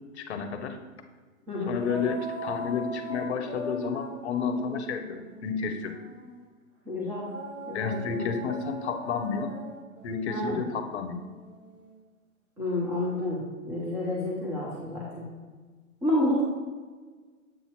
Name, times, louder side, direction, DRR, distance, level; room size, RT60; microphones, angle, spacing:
voice 1, 0.2-0.8 1.7-6.0 7.7-9.5 10.0-11.2, left 5 dB, 50° left, 7 dB, 0.9 m, -31 dB
sound 1, 1.7-6.4 7.2-11.9, equal, 60° right, 2.0 m, -40 dB
voice 2, 6.9-7.3 7.7-8.3 10.3-10.6 12.6-15.2 16.0-16.4, left 1 dB, 5° right, -5 dB, 0.6 m, -29 dB
7.8 x 2.8 x 5.8 m, 1.4 s
hypercardioid pair, 125°, 43 cm